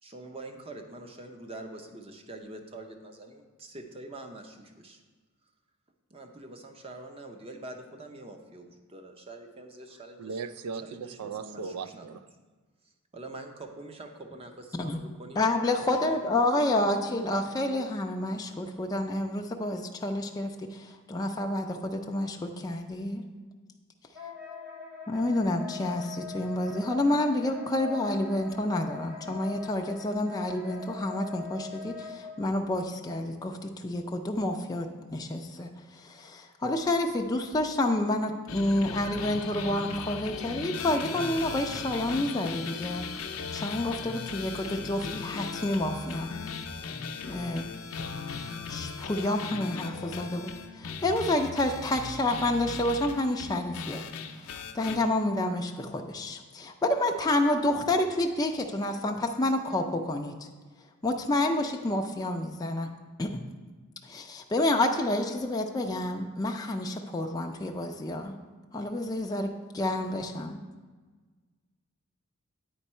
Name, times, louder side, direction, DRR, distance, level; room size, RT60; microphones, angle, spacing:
voice 1, 0.0-5.0 6.1-10.4 10.8-12.1 12.8-15.5 16.0-17.0, right 2 dB, 25° right, 4 dB, 0.6 m, -45 dB
voice 2, 10.2-12.2, right 5 dB, 80° right, 13 dB, 0.4 m, -37 dB
voice 3, 15.4-23.2 25.1-43.1 43.5-46.3 47.3-47.7 48.7-54.0 54.7-60.3 61.0-62.9 63.2-63.4 64.0-68.3 68.7-70.6, left 1 dB, 15° left, 2 dB, 0.4 m, -29 dB
Wind instrument woodwind instrument, 24.1-32.3, left 5 dB, 50° right, 1.9 m, -43 dB
sound 1, 38.5-55.0, left 5 dB, 70° left, 0.5 m, -38 dB
9.0 x 4.5 x 4.3 m, 1.4 s
head